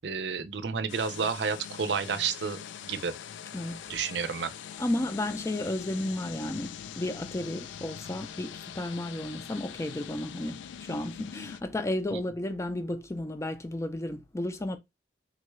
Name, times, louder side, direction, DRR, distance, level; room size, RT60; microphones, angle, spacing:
voice 1, 0.0-3.1 3.9-4.5 12.1-12.2, right 6 dB, 70° right, 0.5 m, -31 dB
sound 1, 0.9-11.6, left 9 dB, 85° left, 0.3 m, -43 dB
voice 2, 4.8-14.8, left 1 dB, 15° left, 0.4 m, -33 dB
3.6 x 2.3 x 3.0 m
head